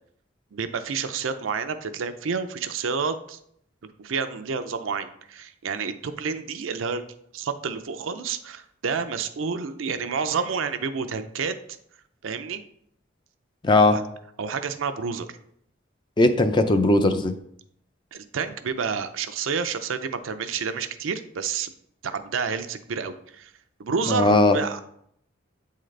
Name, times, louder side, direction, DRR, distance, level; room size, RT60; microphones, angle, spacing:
voice 1, 0.5-3.4 4.0-7.1 7.3-11.5 12.2-12.6 13.9-14.0 14.4-15.3 18.1-21.7 22.0-23.5 23.8-24.8, right 5 dB, 85° right, 9 dB, 0.5 m, -29 dB
voice 2, 13.6-14.0 16.2-17.3 24.1-24.6, left 2 dB, 25° left, 8 dB, 0.4 m, -18 dB
8.4 x 3.8 x 3.2 m, 0.70 s
head